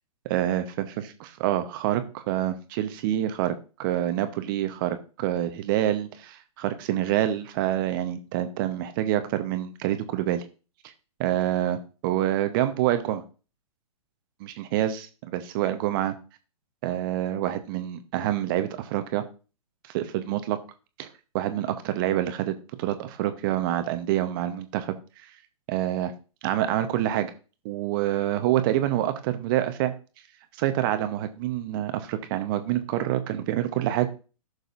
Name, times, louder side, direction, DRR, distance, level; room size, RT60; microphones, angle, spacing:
voice 1, 0.2-0.8 1.4-10.4 11.2-13.2 14.4-16.2 16.8-19.2 19.9-20.6 21.0-21.1 21.3-25.0 25.2-25.3 25.7-26.1 26.4-27.3 27.6-29.9 30.6-34.1, right 12 dB, 35° right, 9 dB, 0.9 m, -27 dB
15.0 x 6.5 x 2.6 m, 0.34 s
figure-of-eight pair, 120°, 19 cm